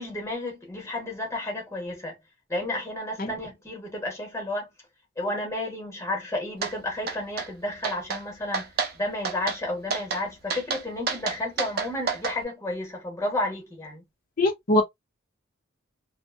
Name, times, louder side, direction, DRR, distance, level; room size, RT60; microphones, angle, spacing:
voice 1, 0.0-2.2 2.5-4.7 5.2-14.0, left 1 dB, 15° left, 1.0 m, -32 dB
sound 1, 6.6-6.7 7.1-7.5 7.8-8.2 8.5-8.9 9.2-9.6 9.9-10.2 10.5-12.4, right 5 dB, 50° right, 0.6 m, -29 dB
voice 2, 14.4-14.8, left 1 dB, 45° left, 0.6 m, -22 dB
2.6 x 2.1 x 2.4 m
head